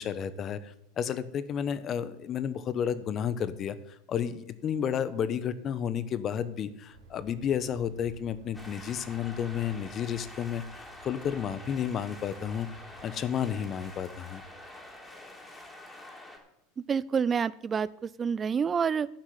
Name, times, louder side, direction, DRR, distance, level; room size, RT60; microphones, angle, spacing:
voice 1, 0.0-3.8 4.1-12.7 13.0-14.4, left 8 dB, 35° left, 14 dB, 1.1 m, -32 dB
Aircraft, 6.9-15.3, right 3 dB, 85° right, 3.1 m, -55 dB
sound 1, 8.5-16.4, left 1 dB, 10° left, 3.4 m, -47 dB
voice 2, 16.9-19.1, right 6 dB, 25° right, 19 dB, 0.3 m, -28 dB
12.0 x 6.0 x 8.9 m, 0.79 s
hypercardioid pair, 110°, 0 cm